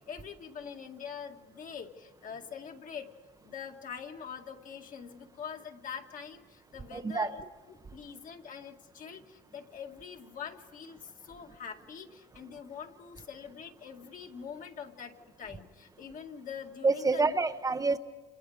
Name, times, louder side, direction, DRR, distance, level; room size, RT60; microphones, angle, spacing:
voice 1, 0.0-3.1 3.4-17.3, left 7 dB, 50° left, 4 dB, 2.1 m, -44 dB
voice 2, 6.9-7.3 16.8-18.0, right 3 dB, 20° right, 10 dB, 0.8 m, -27 dB
29.0 x 28.0 x 5.0 m, 1.3 s
cardioid pair, 110°, 17 cm